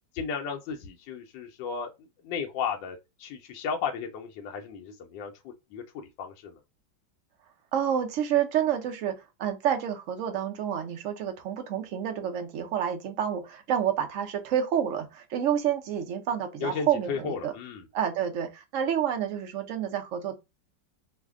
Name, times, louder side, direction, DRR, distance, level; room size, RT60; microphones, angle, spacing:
voice 1, 0.1-1.9 2.2-6.6 16.6-17.9, left 6 dB, 80° left, 1.3 m, -34 dB
voice 2, 7.7-9.1 9.4-17.5 17.9-20.3, right 9 dB, 65° right, 0.7 m, -29 dB
3.2 x 2.1 x 3.5 m
omnidirectional pair, 2.0 m